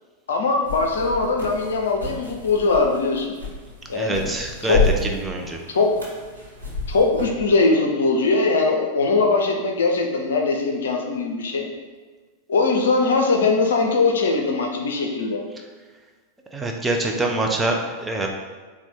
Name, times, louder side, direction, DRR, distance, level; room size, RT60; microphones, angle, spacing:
voice 1, 0.3-3.4 3.9-4.2 4.6-4.8 5.7-5.9 6.9-11.7 12.5-15.4, left 3 dB, 65° left, 2 dB, 0.5 m, -21 dB
sound 1, 0.6-7.4, left 4 dB, 85° right, 1.3 m, -30 dB
voice 2, 3.9-4.8 5.2-5.6 16.5-18.3, right 2 dB, 10° right, 1 dB, 0.5 m, -25 dB
4.1 x 2.3 x 4.3 m, 1.4 s
figure-of-eight pair, 90°, 0 cm